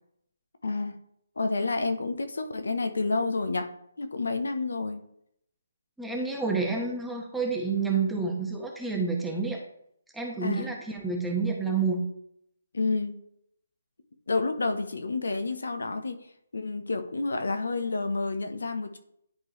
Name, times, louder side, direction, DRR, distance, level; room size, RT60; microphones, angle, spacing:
voice 1, 0.6-1.0 1.4-3.7 4.0-5.0 10.4-10.7 12.7-13.2 14.3-16.3 16.5-19.0, left 3 dB, 80° left, 8 dB, 0.9 m, -29 dB
voice 2, 6.0-9.6 10.1-12.0, right 4 dB, 5° right, -1 dB, 1.0 m, -29 dB
11.0 x 3.8 x 3.1 m, 0.74 s
hypercardioid pair, 155°, 0 cm